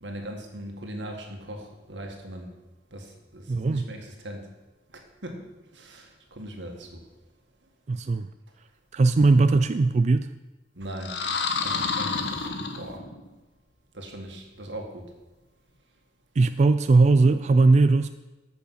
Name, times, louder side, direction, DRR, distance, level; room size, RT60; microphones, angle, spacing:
voice 1, 0.0-2.5 2.9-4.5 4.9-5.5 5.7-7.0 10.7-11.2 11.6-13.1 13.9-15.1, right 1 dB, 90° right, 2 dB, 1.9 m, -39 dB
voice 2, 3.5-3.9 7.9-8.3 8.9-10.3 16.4-18.1, right 3 dB, 40° right, 11 dB, 0.3 m, -19 dB
sound 1, 11.0-13.3, left 4 dB, 70° left, 1.1 m, -29 dB
14.5 x 6.3 x 5.7 m, 1.1 s
head